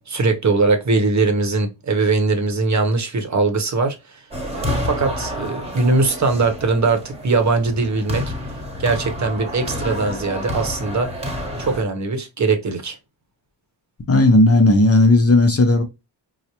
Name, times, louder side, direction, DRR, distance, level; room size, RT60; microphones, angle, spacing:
voice 1, 0.1-4.2 4.5-8.3 8.8-11.1 11.6-13.0, right 3 dB, 40° right, 0.9 m, -20 dB
sound 1, 4.3-11.8, left 1 dB, 15° right, 1.1 m, -29 dB
voice 2, 14.1-15.8, left 2 dB, 30° left, 0.6 m, -14 dB
4.6 x 2.1 x 2.8 m
wide cardioid pair, 125°, 46 cm